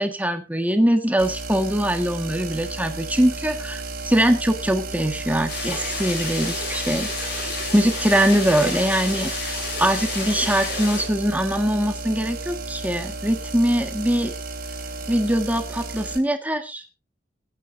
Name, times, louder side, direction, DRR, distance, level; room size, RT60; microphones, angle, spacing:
voice 1, 0.0-7.1 7.7-14.3 15.1-16.8, right 1 dB, 10° right, 7 dB, 1.6 m, -22 dB
sound 1, 1.2-16.2, right 3 dB, 55° right, 3.0 m, -33 dB
sound 2, 5.5-11.0, left 3 dB, 60° left, 6.9 m, -30 dB
20.5 x 9.7 x 2.6 m, 0.25 s
head